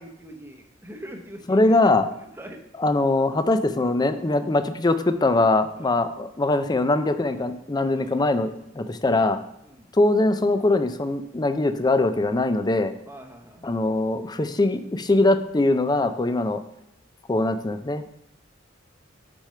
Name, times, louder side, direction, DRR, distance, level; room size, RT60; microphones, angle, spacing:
voice 1, 0.0-1.7 2.3-2.6 5.8-5.9 7.9-8.1 9.6-9.9 13.1-13.8, right 1 dB, 10° right, 3 dB, 0.8 m, -43 dB
voice 2, 1.5-2.1 2.8-9.4 9.9-12.9 13.6-16.6 17.3-18.2, left 2 dB, 20° left, 10 dB, 0.4 m, -22 dB
6.2 x 5.0 x 5.6 m, 0.81 s
head